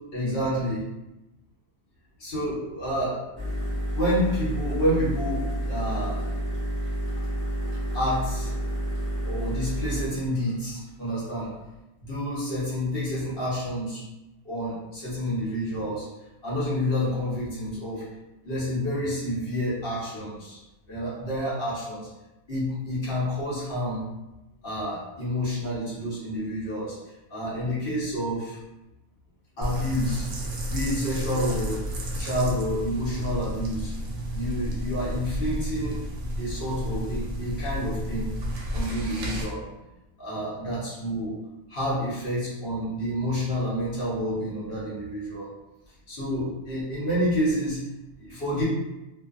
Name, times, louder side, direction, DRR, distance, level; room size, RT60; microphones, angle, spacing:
voice 1, 0.1-0.8 2.2-3.6 3.9-6.3 7.9-8.5 9.2-11.5 12.0-14.0 14.4-16.1 16.4-18.0 18.4-20.6 20.9-22.1 22.5-24.0 24.6-27.0 27.3-28.6 29.6-30.3 30.7-31.8 32.2-33.9 34.3-36.0 36.4-38.3 38.7-39.6 40.2-41.4 41.7-45.5 46.1-47.8 48.2-48.6, equal, 50° left, -8 dB, 1.0 m, -29 dB
sound 1, 3.4-11.6, right 1 dB, 10° right, 0.8 m, -30 dB
raw mysterypee, 29.6-39.4, equal, 70° right, 0.9 m, -32 dB
2.5 x 2.2 x 2.4 m, 0.97 s
omnidirectional pair, 1.4 m